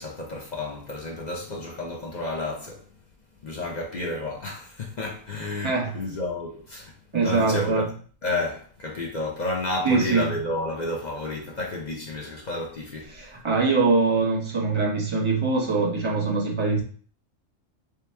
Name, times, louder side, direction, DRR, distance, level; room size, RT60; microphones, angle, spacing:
voice 1, 0.0-2.8 3.4-6.9 7.2-7.9 8.2-13.1, left 2 dB, 45° left, 0.6 m, -31 dB
voice 2, 5.6-6.0 7.1-7.9 9.8-10.3 13.1-16.8, right 4 dB, 25° right, 1.0 m, -23 dB
3.3 x 3.0 x 3.3 m
omnidirectional pair, 1.4 m